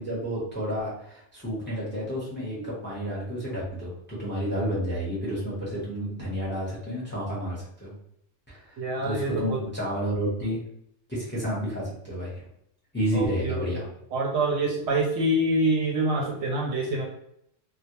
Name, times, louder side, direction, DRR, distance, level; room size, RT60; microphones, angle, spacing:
voice 1, 0.0-7.9 8.5-10.6 11.1-12.4 12.9-13.8, equal, 10° left, -6 dB, 0.7 m, -30 dB
voice 2, 8.8-9.6 13.1-13.8 14.1-17.1, right 1 dB, 70° right, 0 dB, 0.8 m, -26 dB
2.2 x 2.1 x 2.9 m, 0.75 s
omnidirectional pair, 1.3 m